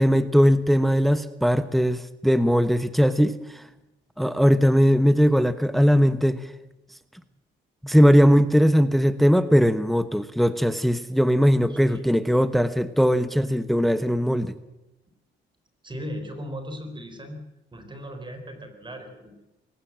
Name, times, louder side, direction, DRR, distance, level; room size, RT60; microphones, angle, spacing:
voice 1, 0.0-3.6 4.2-6.4 7.8-14.5, equal, ahead, 13 dB, 1.0 m, -19 dB
voice 2, 11.5-12.0 15.8-17.4 17.7-19.3, equal, 25° right, 6 dB, 4.3 m, -37 dB
20.5 x 18.5 x 7.5 m, 0.98 s
cardioid pair, 90°, 20 cm